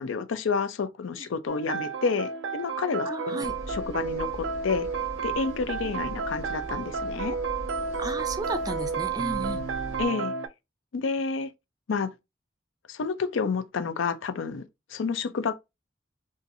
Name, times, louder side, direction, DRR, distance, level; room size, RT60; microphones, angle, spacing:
voice 1, 0.0-4.9 5.2-7.4 10.0-10.3 10.9-11.5 11.9-12.1 12.9-14.6 14.9-15.5, left 5 dB, 85° left, 0.4 m, -29 dB
sound 1, 1.5-10.5, right 5 dB, 80° right, 0.4 m, -32 dB
voice 2, 3.0-3.5 5.8-6.0 8.0-9.6, right 2 dB, 20° right, 0.3 m, -34 dB
sound 2, 3.4-10.1, equal, 20° left, 1.7 m, -41 dB
4.0 x 2.5 x 2.6 m
head